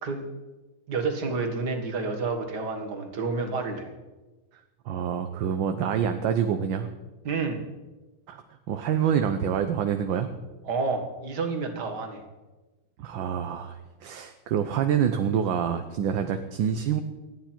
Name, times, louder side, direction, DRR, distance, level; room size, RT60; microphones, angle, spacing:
voice 1, 0.9-3.9 7.2-7.6 10.6-12.2, right 4 dB, 55° right, 4 dB, 2.3 m, -29 dB
voice 2, 4.5-6.9 8.3-10.3 13.0-17.0, right 8 dB, 70° right, 7 dB, 1.5 m, -27 dB
28.0 x 9.6 x 4.5 m, 1.2 s
omnidirectional pair, 2.3 m